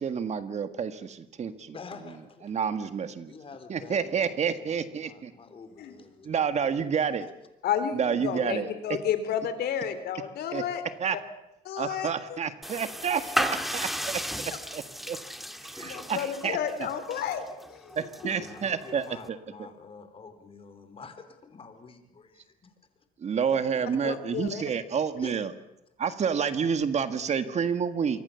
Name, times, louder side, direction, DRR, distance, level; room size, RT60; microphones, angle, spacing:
voice 1, 0.0-1.8 2.4-3.3 3.7-5.3 6.2-7.3 7.9-8.7 10.5-10.6 11.0-11.2 11.8-15.2 15.7-16.6 17.9-19.4 23.2-25.5 26.0-28.2, right 7 dB, 40° right, 10 dB, 1.8 m, -29 dB
voice 2, 1.7-2.6 3.3-6.3 7.2-7.3 18.2-22.7 23.9-24.2 25.2-25.4, left 5 dB, 35° left, 8 dB, 4.1 m, -47 dB
voice 3, 7.6-10.8 11.6-12.4 15.8-17.4 17.7-18.0 24.0-24.6, left 8 dB, 70° left, 10 dB, 3.5 m, -31 dB
sound 1, 12.6-19.3, equal, ahead, 1.6 m, -35 dB
26.5 x 24.0 x 7.0 m, 0.89 s
cardioid pair, 110°, 17 cm